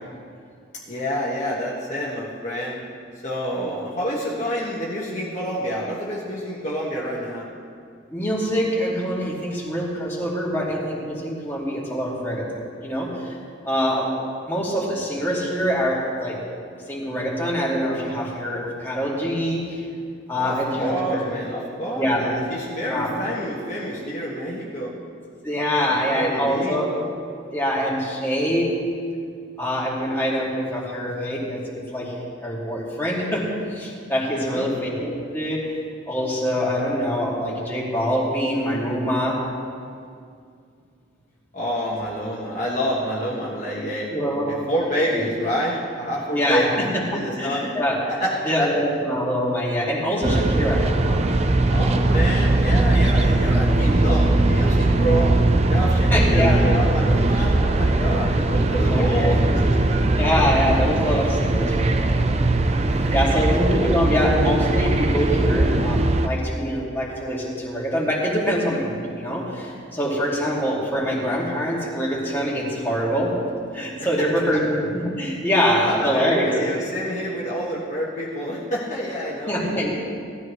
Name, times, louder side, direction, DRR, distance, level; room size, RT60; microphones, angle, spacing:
voice 1, 0.7-2.8 3.2-7.5 20.3-24.9 25.9-26.8 34.3-34.8 41.5-44.1 44.5-46.8 47.1-47.7 48.1-48.7 51.7-55.4 55.7-60.0 62.8-63.4 63.7-64.0 74.0-74.3 74.5-74.6 75.8-79.9, equal, 35° left, -6 dB, 1.6 m, -28 dB
voice 2, 8.1-13.4 13.6-14.1 14.5-16.4 16.9-19.8 20.3-21.2 21.9-22.3 22.9-23.1 25.4-26.9 27.5-28.8 29.6-32.1 32.4-35.8 36.1-39.4 44.1-44.6 45.1-45.2 46.3-46.6 47.4-48.0 48.4-51.2 56.1-56.6 58.8-59.4 60.2-62.4 63.1-73.3 73.7-76.7 79.5-80.0, equal, 10° left, -6 dB, 2.3 m, -24 dB
sound 1, 50.2-66.3, right 2 dB, 30° right, 0.5 m, -20 dB
18.0 x 13.5 x 3.2 m, 2.3 s
head